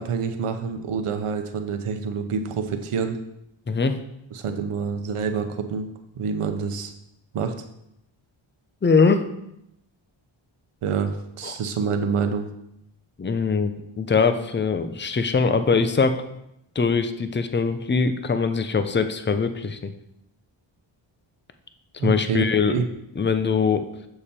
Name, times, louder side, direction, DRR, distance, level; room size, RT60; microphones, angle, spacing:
voice 1, 0.0-3.2 4.3-5.9 6.2-6.9 7.3-7.5 10.8-12.5 22.0-22.8, right 5 dB, 85° right, 6 dB, 0.9 m, -27 dB
voice 2, 3.7-4.0 8.8-9.3 11.4-11.6 13.2-16.2 16.8-19.9 22.0-22.8 23.2-23.9, left 5 dB, 25° left, 10 dB, 0.6 m, -22 dB
7.0 x 6.8 x 4.3 m, 0.81 s
wide cardioid pair, 80°, 50 cm